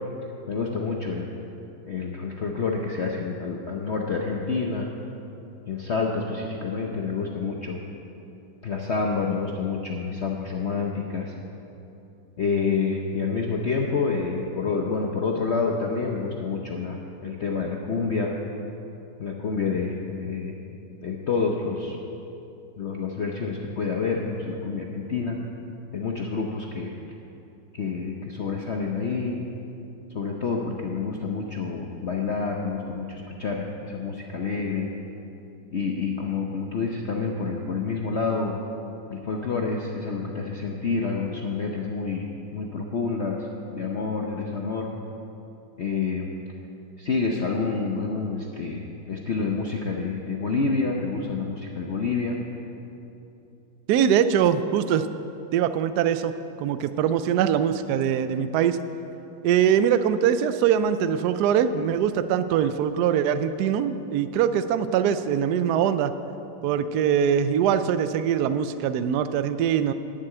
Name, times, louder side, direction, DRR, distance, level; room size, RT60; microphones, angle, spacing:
voice 1, 0.5-1.3 1.9-4.9 5.7-7.8 8.6-11.3 12.4-18.3 19.2-20.6 21.0-22.0 22.8-25.4 25.9-26.9 27.7-29.4 30.1-34.9 35.7-38.6 39.1-44.9 45.8-46.3 47.0-52.4, left 4 dB, 70° left, 0 dB, 0.6 m, -28 dB
voice 2, 53.9-55.1 55.5-56.3 56.6-58.8 59.4-66.1 66.6-69.9, right 8 dB, 80° right, 11 dB, 0.9 m, -22 dB
10.5 x 7.6 x 8.7 m, 2.9 s
omnidirectional pair, 2.2 m